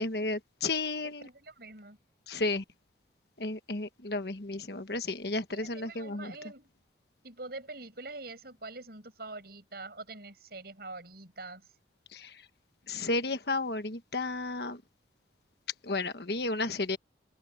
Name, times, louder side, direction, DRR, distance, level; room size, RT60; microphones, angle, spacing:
voice 1, 0.0-1.3 2.3-2.6 3.4-6.3 12.1-12.3 12.9-14.8 15.8-17.0, left 2 dB, 60° left, 1.4 m, -33 dB
voice 2, 1.0-2.0 5.5-6.7 7.2-11.6, right 2 dB, 55° right, 7.9 m, -45 dB
head